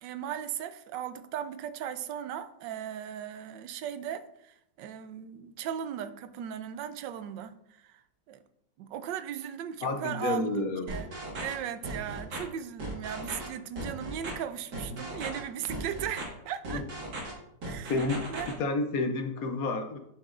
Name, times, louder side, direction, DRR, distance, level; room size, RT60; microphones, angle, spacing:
voice 1, 0.0-7.5 7.9-8.0 8.3-8.4 8.8-11.1 11.4-16.8 17.6-18.6, right 9 dB, 85° right, 11 dB, 1.3 m, -37 dB
voice 2, 9.8-10.9 16.7-16.8 17.9-20.0, left 3 dB, 65° left, 6 dB, 1.0 m, -30 dB
sound 1, 10.9-11.5 11.8-12.4 12.8-13.5 13.8-14.3 14.7-15.4 15.7-16.2 16.6-17.3 17.6-18.5, right 2 dB, 70° right, 2.3 m, -37 dB
7.9 x 7.5 x 2.5 m, 0.79 s
omnidirectional pair, 1.9 m